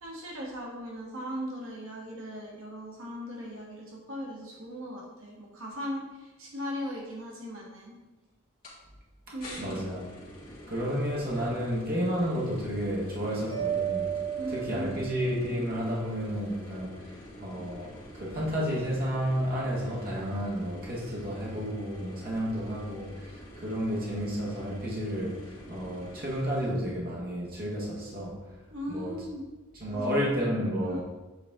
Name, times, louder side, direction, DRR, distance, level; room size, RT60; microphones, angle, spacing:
voice 1, 0.0-7.9 9.3-9.9 14.4-15.2 28.7-29.4 29.9-30.1 30.8-31.0, equal, 70° right, 1.3 m, -38 dB
sound 1, 8.6-8.8 9.4-26.6, equal, 40° left, 1.9 m, -47 dB
voice 2, 9.3-10.1 10.7-14.2 14.5-28.6 28.9-29.2 29.8-31.0, equal, 40° right, 1.5 m, -31 dB
Mallet percussion, 13.5-15.6, right 9 dB, 90° left, 1.3 m, -33 dB
7.9 x 4.1 x 3.6 m
head